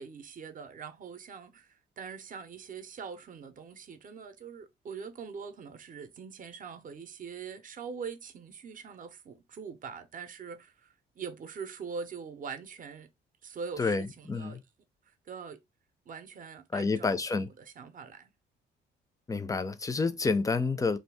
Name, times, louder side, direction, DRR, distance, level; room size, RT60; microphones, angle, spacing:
voice 1, 0.0-13.1 13.4-14.6 15.1-15.6 16.1-18.3, right 6 dB, 45° right, 0.6 m, -43 dB
voice 2, 13.8-14.6 16.7-17.5 19.3-21.0, left 4 dB, 15° left, 0.4 m, -29 dB
2.7 x 2.4 x 3.3 m
cardioid pair, 90°, 20 cm